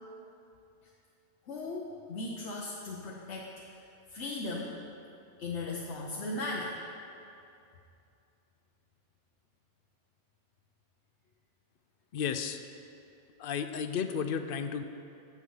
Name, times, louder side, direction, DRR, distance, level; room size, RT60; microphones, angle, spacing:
voice 1, 1.5-3.8 4.1-4.7 5.4-6.8, left 2 dB, 75° left, -2 dB, 1.1 m, -37 dB
voice 2, 12.1-12.6 13.4-14.8, left 7 dB, 60° left, 9 dB, 0.7 m, -33 dB
9.5 x 7.6 x 5.5 m, 2.6 s
omnidirectional pair, 1.2 m